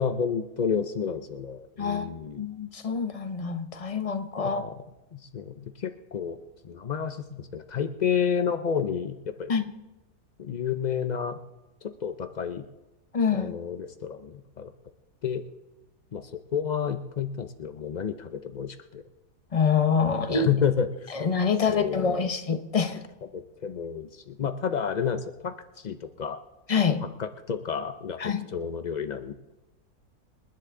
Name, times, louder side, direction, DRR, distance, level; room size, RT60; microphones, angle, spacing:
voice 1, 0.0-2.4 4.4-4.8 5.1-6.4 6.6-9.5 10.4-11.4 11.8-12.6 13.3-14.7 15.2-15.4 16.1-19.0 20.3-21.1 21.7-22.3 22.9-23.0 23.3-26.4 27.0-29.3, left 7 dB, 75° left, 8 dB, 0.4 m, -30 dB
voice 2, 2.4-4.6 9.5-9.6 13.1-13.5 19.5-20.5 21.1-23.0 26.7-27.0 28.2-28.5, left 6 dB, 30° left, 8 dB, 0.7 m, -26 dB
27.5 x 10.5 x 3.8 m, 1.0 s
omnidirectional pair, 1.7 m